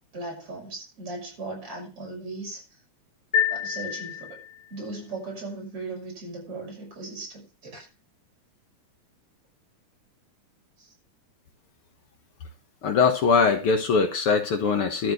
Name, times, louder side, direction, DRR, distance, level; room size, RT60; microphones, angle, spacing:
voice 1, 0.1-2.6 3.5-4.4 4.7-7.9 10.8-10.9, right 3 dB, 45° right, -1 dB, 7.0 m, -37 dB
sound 1, 3.3-4.8, left 8 dB, 5° left, 2.3 m, -28 dB
voice 2, 12.8-15.1, left 5 dB, 55° left, 6 dB, 1.8 m, -22 dB
13.0 x 4.7 x 7.8 m, 0.31 s
omnidirectional pair, 3.5 m